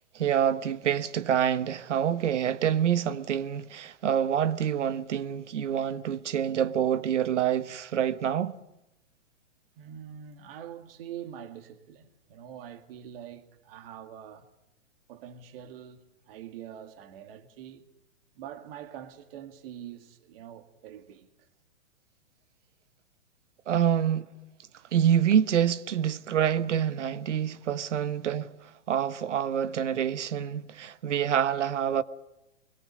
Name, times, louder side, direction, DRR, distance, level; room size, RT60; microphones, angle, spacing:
voice 1, 0.1-8.6 23.7-24.3 24.9-32.0, right 9 dB, 75° right, 1.3 m, -27 dB
voice 2, 9.8-14.5 15.1-17.9 18.3-21.3 27.5-27.6, right 9 dB, 50° right, 2.3 m, -44 dB
24.0 x 21.5 x 6.6 m
hypercardioid pair, 130°, 37 cm